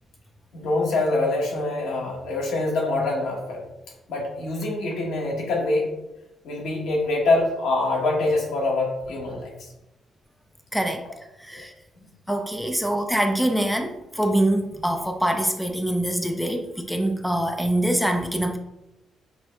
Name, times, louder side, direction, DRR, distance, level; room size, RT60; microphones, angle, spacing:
voice 1, 0.5-3.6 4.1-5.9 6.4-9.7 11.5-11.6 12.3-12.4, left 2 dB, 85° left, -1 dB, 1.2 m, -25 dB
voice 2, 10.7-11.0 11.4-11.7 12.3-18.6, right 1 dB, ahead, 4 dB, 0.4 m, -24 dB
5.9 x 2.0 x 3.3 m, 0.91 s
cardioid pair, 100°, 0 cm